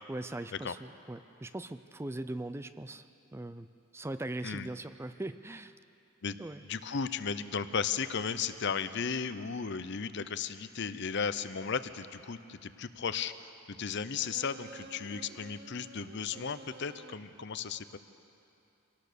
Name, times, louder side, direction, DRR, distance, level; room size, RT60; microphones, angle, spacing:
voice 1, 0.1-3.0 3.3-3.7 3.9-5.7 6.4-6.6, right 1 dB, 10° right, 11 dB, 0.4 m, -40 dB
voice 2, 6.7-13.3 13.7-18.0, left 6 dB, 60° left, 12 dB, 0.7 m, -35 dB
sound 1, 14.1-17.1, right 3 dB, 50° right, 0.8 m, -51 dB
25.0 x 18.0 x 6.8 m, 2.8 s
head